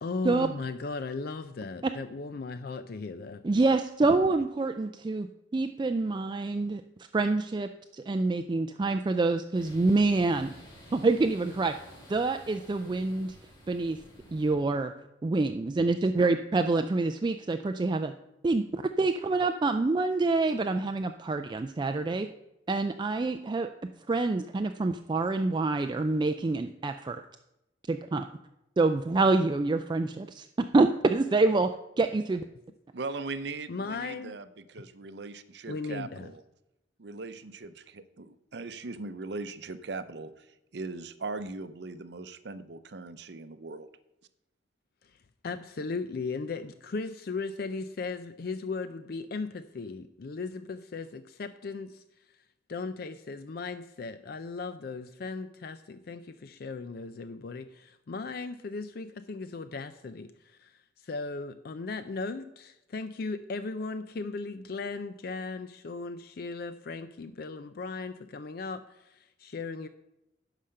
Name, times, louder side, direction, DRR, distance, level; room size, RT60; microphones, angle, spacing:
voice 1, 0.0-3.4 15.8-15.9 33.7-34.3 35.7-36.3 45.0-45.2 45.4-52.0 52.7-69.9, left 4 dB, 55° left, 11 dB, 0.4 m, -37 dB
voice 2, 3.4-5.3 5.5-6.8 7.1-10.5 10.9-11.7 12.1-13.4 13.7-14.0 14.3-14.9 15.2-18.1 18.4-22.3 22.7-23.7 24.1-27.2 27.9-28.3 28.8-30.5 30.7-31.7 32.0-32.5, right 3 dB, 25° right, 8 dB, 0.3 m, -26 dB
sound 1, 9.5-14.5, equal, 25° left, 4.0 m, -51 dB
voice 3, 32.9-36.4 37.0-40.5 40.7-43.9, right 3 dB, 65° right, 12 dB, 0.6 m, -39 dB
11.5 x 5.0 x 6.5 m, 0.89 s
head